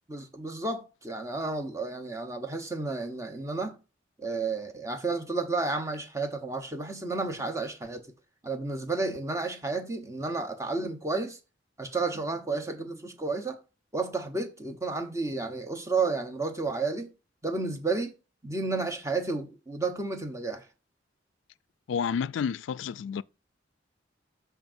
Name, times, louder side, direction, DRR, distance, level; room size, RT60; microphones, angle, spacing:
voice 1, 0.1-3.8 4.2-8.1 8.4-11.4 11.8-13.6 13.9-17.1 17.4-18.1 18.4-20.6, right 3 dB, 15° right, 1.0 m, -31 dB
voice 2, 21.9-23.2, left 7 dB, 70° left, 0.3 m, -30 dB
13.5 x 4.6 x 2.6 m
head